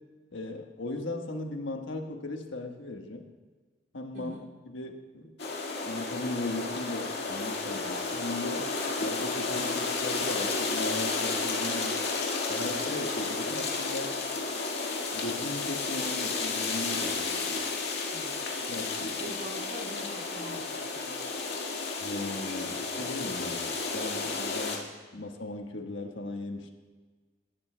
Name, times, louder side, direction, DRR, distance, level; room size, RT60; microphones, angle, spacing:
voice 1, 0.3-3.3 3.9-5.3 5.8-8.7 9.0-12.0 12.5-14.2 15.1-17.6 18.7-19.2 22.0-26.7, left 2 dB, 85° left, 3 dB, 1.3 m, -37 dB
sound 1, 5.4-24.8, left 3 dB, 60° left, 1.8 m, -32 dB
voice 2, 19.2-21.2 23.5-23.7 25.1-25.2, equal, 70° right, -4 dB, 2.5 m, -44 dB
18.0 x 12.5 x 2.2 m, 1.4 s
head